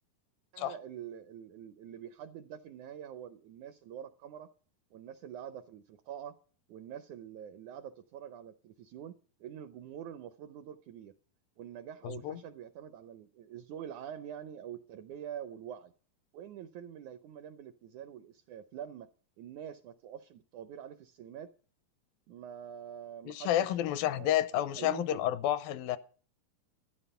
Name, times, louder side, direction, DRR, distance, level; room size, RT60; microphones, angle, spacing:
voice 1, 0.5-4.5 4.9-6.4 6.7-11.1 11.6-15.9 16.3-19.1 19.4-21.5 22.3-25.2, right 9 dB, 80° right, 1.7 m, -46 dB
voice 2, 12.0-12.4 23.3-26.0, left 12 dB, 80° left, 2.4 m, -30 dB
13.5 x 10.5 x 5.6 m
omnidirectional pair, 4.2 m